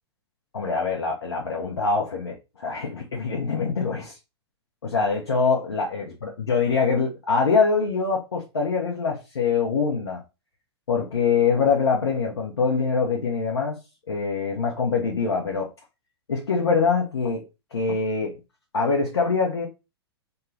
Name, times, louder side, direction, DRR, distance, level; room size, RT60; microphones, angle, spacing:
voice 1, 0.5-4.1 4.8-10.2 10.9-13.8 14.1-15.7 16.3-17.4 17.7-18.3 18.7-19.7, left 5 dB, 75° left, 0.7 m, -24 dB
2.4 x 2.2 x 3.1 m
figure-of-eight pair, 105°, 14 cm